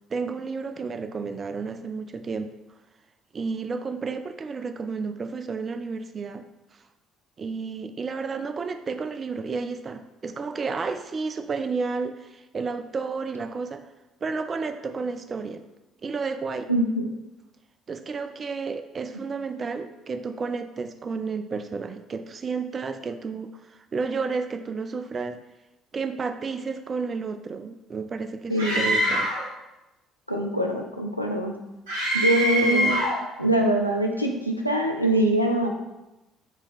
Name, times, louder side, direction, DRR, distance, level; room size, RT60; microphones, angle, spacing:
voice 1, 0.1-2.5 3.3-6.5 6.7-6.8 7.4-13.8 14.2-15.6 16.0-16.7 17.9-25.4 25.9-29.3 32.6-33.0, right 4 dB, 35° right, 9 dB, 0.3 m, -31 dB
voice 2, 16.7-17.1 28.5-29.0 30.3-31.6 32.1-33.0 33.4-35.7, right 1 dB, 90° left, 1 dB, 0.3 m, -23 dB
Screaming, 28.6-29.5 31.9-33.2, equal, 75° right, 1.0 m, -24 dB
4.4 x 2.8 x 3.5 m, 1.0 s
figure-of-eight pair, 50°, 0 cm